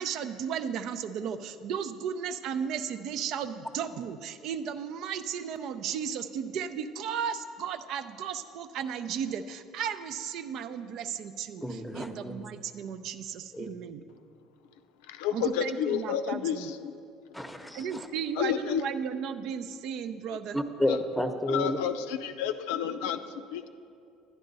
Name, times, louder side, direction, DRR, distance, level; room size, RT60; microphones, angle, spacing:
voice 1, 0.0-14.0 15.3-16.7 17.7-20.6, right 7 dB, 65° right, 10 dB, 0.5 m, -35 dB
voice 2, 11.6-12.3 13.5-13.7 17.3-18.1 20.5-21.8, left 1 dB, ahead, 6 dB, 0.8 m, -31 dB
voice 3, 15.1-17.0 18.4-18.8 20.9-21.0 21.5-23.7, left 9 dB, 85° left, 10 dB, 0.5 m, -31 dB
11.0 x 10.5 x 4.0 m, 2.5 s
supercardioid pair, 90°, 0 cm